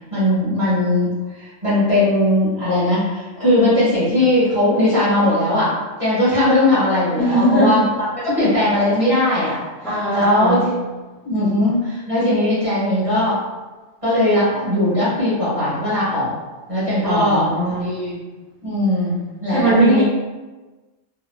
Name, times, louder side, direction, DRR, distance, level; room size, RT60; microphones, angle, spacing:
voice 1, 0.1-7.9 8.2-9.6 10.1-10.7 11.2-13.4 14.0-16.3 16.7-17.5 17.8-18.2 18.6-19.1 19.4-20.0, left 1 dB, 25° right, -11 dB, 1.4 m, -19 dB
voice 2, 7.2-7.8 9.8-10.6 17.0-18.0 19.5-20.0, right 2 dB, ahead, -11 dB, 0.9 m, -19 dB
3.0 x 2.8 x 2.2 m, 1.2 s
omnidirectional pair, 1.3 m